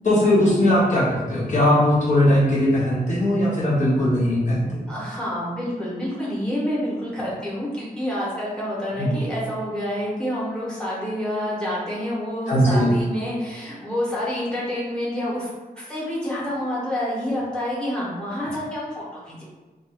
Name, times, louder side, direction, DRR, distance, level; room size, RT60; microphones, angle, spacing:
voice 1, 0.0-4.8 9.0-9.2 12.5-12.9, left 1 dB, 50° left, -7 dB, 1.0 m, -19 dB
voice 2, 4.9-19.4, equal, 5° left, -7 dB, 1.1 m, -28 dB
2.6 x 2.3 x 4.1 m, 1.2 s
wide cardioid pair, 145°, 16 cm